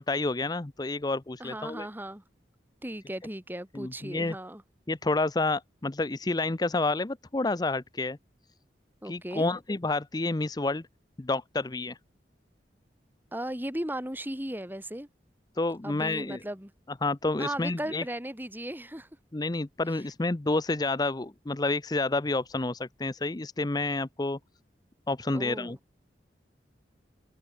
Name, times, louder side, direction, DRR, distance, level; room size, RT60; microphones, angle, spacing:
voice 1, 0.0-1.9 3.7-4.4 4.9-8.2 9.0-10.8 11.2-12.0 15.6-16.4 17.0-18.0 19.3-24.4 25.1-25.8, left 2 dB, 20° left, 0.6 m, -29 dB
voice 2, 1.4-2.2 2.8-4.6 9.0-9.5 13.3-15.1 15.8-16.7 17.4-19.1 25.3-25.8, right 1 dB, 10° right, 3.0 m, -36 dB
head